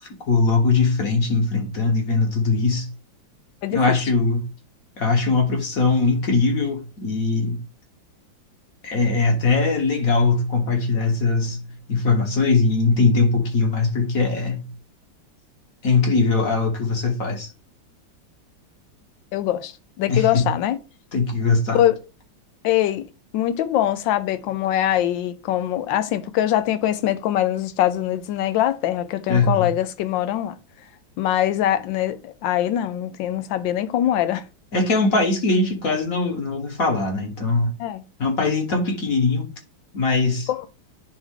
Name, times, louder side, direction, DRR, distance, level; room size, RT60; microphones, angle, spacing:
voice 1, 0.0-2.9 3.7-4.5 5.0-7.6 8.8-14.7 15.8-17.5 20.1-20.5 21.1-21.8 29.3-29.7 34.7-37.8 38.2-39.5 39.9-40.5, left 3 dB, 50° left, 1.6 m, -21 dB
voice 2, 3.6-4.0 19.3-20.8 21.7-22.0 22.6-23.1 23.3-30.6 31.2-34.4 37.8-38.0 40.5-40.6, left 12 dB, 80° left, 1.4 m, -23 dB
10.0 x 3.5 x 3.7 m
omnidirectional pair, 2.0 m